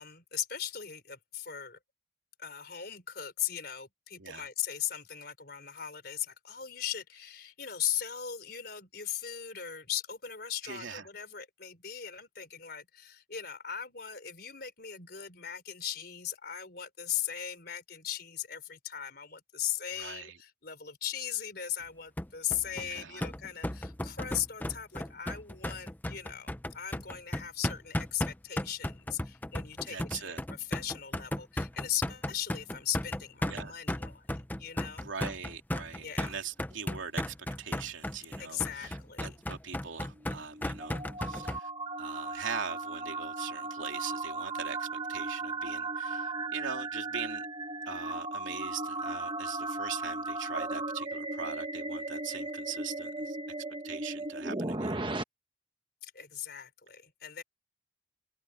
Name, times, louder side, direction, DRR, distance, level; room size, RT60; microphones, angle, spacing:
voice 1, 0.0-1.8 2.4-35.1 36.0-36.4 38.4-39.4 56.0-57.4, left 10 dB, 55° left, 4.4 m, -38 dB
voice 2, 10.6-11.1 20.0-20.4 22.7-23.3 29.9-30.4 33.4-33.7 35.0-41.7 42.0-47.4 47.9-53.4 53.8-55.0, right 6 dB, 85° right, 3.0 m, -41 dB
sound 1, 22.2-41.6, left 1 dB, 10° left, 0.7 m, -35 dB
sound 2, 40.2-55.2, right 2 dB, 25° right, 1.1 m, -36 dB
head